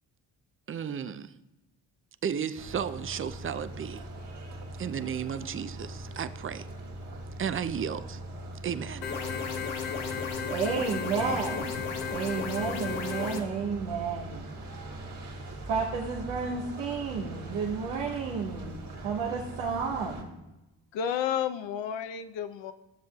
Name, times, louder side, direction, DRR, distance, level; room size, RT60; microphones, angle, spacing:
voice 1, 0.7-1.3 2.2-4.0 4.8-6.7 7.4-8.2 8.6-9.2, right 8 dB, 30° right, 12 dB, 0.5 m, -33 dB
sound 1, 2.6-20.2, right 1 dB, 50° right, 2.4 m, -42 dB
sound 2, 9.0-13.4, left 6 dB, 80° left, 1.1 m, -34 dB
voice 2, 10.5-11.7 12.1-14.5 15.7-20.3, right 5 dB, 85° right, -4 dB, 1.1 m, -31 dB
voice 3, 20.9-22.7, left 8 dB, 65° left, 10 dB, 0.8 m, -31 dB
13.0 x 7.3 x 2.3 m, 0.95 s
hypercardioid pair, 45°, 48 cm